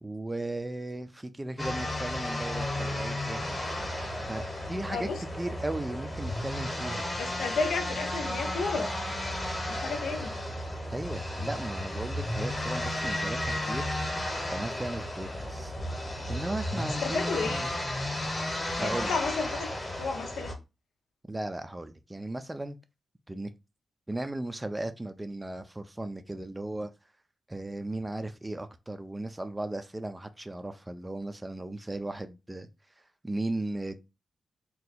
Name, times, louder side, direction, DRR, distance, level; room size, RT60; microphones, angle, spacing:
voice 1, 0.0-3.4 4.3-5.1 5.4-7.1 10.9-13.9 14.5-15.7 16.3-17.7 18.8-19.1 21.3-22.8 23.3-23.5 24.1-26.9 27.5-32.7 33.2-34.0, right 1 dB, 15° right, 0.3 m, -36 dB
sound 1, 1.6-20.5, left 1 dB, 20° left, 0.9 m, -33 dB
voice 2, 4.9-5.2 7.2-8.9 9.7-10.4 17.0-17.6 18.8-19.7 20.0-20.5, left 4 dB, 90° left, 0.6 m, -32 dB
2.7 x 2.3 x 4.0 m
wide cardioid pair, 125°, 0 cm